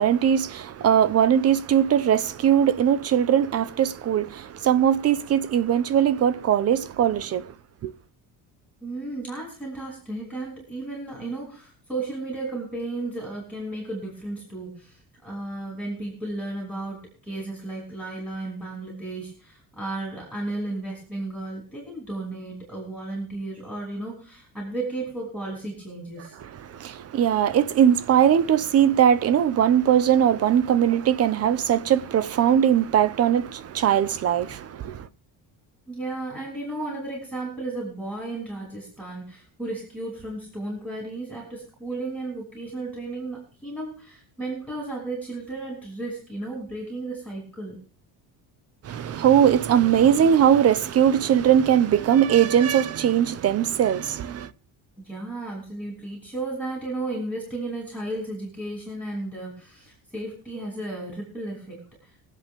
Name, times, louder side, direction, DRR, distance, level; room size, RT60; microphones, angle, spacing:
voice 1, 0.0-7.5 7.8-7.9 26.4-35.1 48.8-54.5, right 9 dB, 35° right, 0.7 m, -20 dB
voice 2, 8.8-26.4 35.9-47.8 55.0-61.8, right 2 dB, 5° right, 6.0 m, -34 dB
24.5 x 8.2 x 3.6 m
cardioid pair, 155°, 40 cm